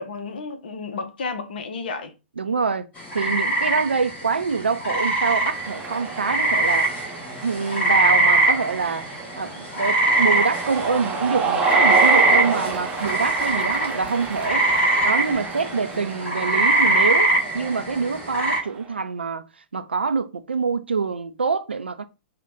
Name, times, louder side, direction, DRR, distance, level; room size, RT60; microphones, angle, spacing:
voice 1, 0.0-2.1, left 4 dB, 60° left, 0.6 m, -32 dB
voice 2, 2.4-2.9 3.1-6.9 7.4-9.1 9.4-14.7 15.0-19.5 19.7-22.0, right 5 dB, 75° right, 0.4 m, -25 dB
sound 1, 3.0-18.6, right 2 dB, 25° left, 1.5 m, -22 dB
Cheering, 5.4-18.9, right 5 dB, 20° right, 0.6 m, -30 dB
3.8 x 2.2 x 3.5 m
figure-of-eight pair, 105°, 6 cm